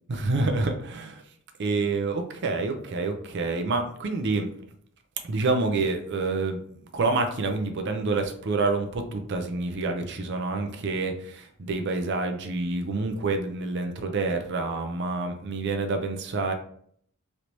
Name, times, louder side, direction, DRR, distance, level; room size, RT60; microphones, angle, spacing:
voice 1, 0.1-1.2 1.6-4.5 5.2-16.5, right 3 dB, 55° right, 5 dB, 0.5 m, -28 dB
3.2 x 3.0 x 2.6 m, 0.62 s
head